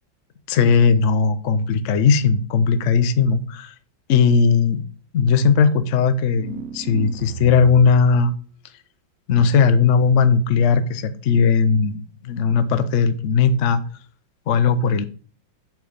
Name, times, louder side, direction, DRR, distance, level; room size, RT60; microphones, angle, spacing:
voice 1, 0.5-3.7 4.1-4.8 5.1-8.3 9.3-12.0 12.2-13.8 14.5-15.0, left 5 dB, 55° left, 0.8 m, -17 dB
sound 1, 6.3-8.1, right 8 dB, 70° right, 0.8 m, -35 dB
7.9 x 5.3 x 5.5 m
omnidirectional pair, 2.2 m